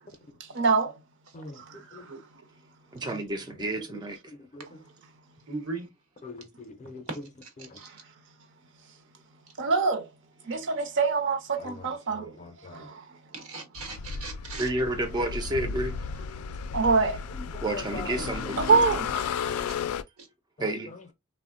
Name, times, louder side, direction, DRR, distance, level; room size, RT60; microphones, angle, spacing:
voice 1, 0.4-0.9 1.6-2.1 7.8-8.0 9.6-10.1 10.4-12.3 12.7-13.2 16.7-17.2 18.6-19.3, right 4 dB, 60° right, 0.6 m, -25 dB
voice 2, 1.3-2.1 3.0-3.2 3.8-3.9 4.3-4.8 6.2-7.3 7.6-7.8 11.6-12.9 15.6-15.7 17.3-18.3 20.6-21.1, left 3 dB, 35° left, 0.5 m, -43 dB
voice 3, 2.9-4.3 14.6-16.2 17.6-18.8 20.6-20.9, right 1 dB, 20° right, 0.3 m, -31 dB
voice 4, 5.5-5.9 7.1-7.2 7.7-7.9 13.3-14.7 18.2-18.3 20.2-20.3, right 3 dB, 85° right, 1.0 m, -37 dB
sound 1, 13.7-20.0, left 6 dB, 90° left, 0.3 m, -34 dB
3.4 x 2.1 x 2.4 m
head